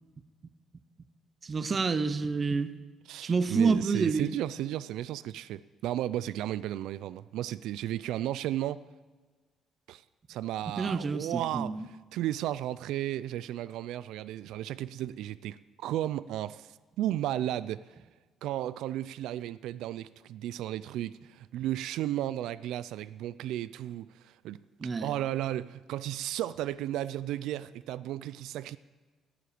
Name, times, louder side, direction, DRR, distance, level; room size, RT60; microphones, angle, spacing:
voice 1, 1.4-2.7 3.2-4.4 10.8-11.8 24.8-25.1, right 4 dB, 25° right, 0.5 m, -28 dB
voice 2, 3.1-8.8 9.9-10.0 10.3-17.9 18.4-24.6 25.0-28.8, right 13 dB, 80° right, 0.3 m, -34 dB
12.0 x 7.8 x 8.4 m
cardioid pair, 175°, 0 cm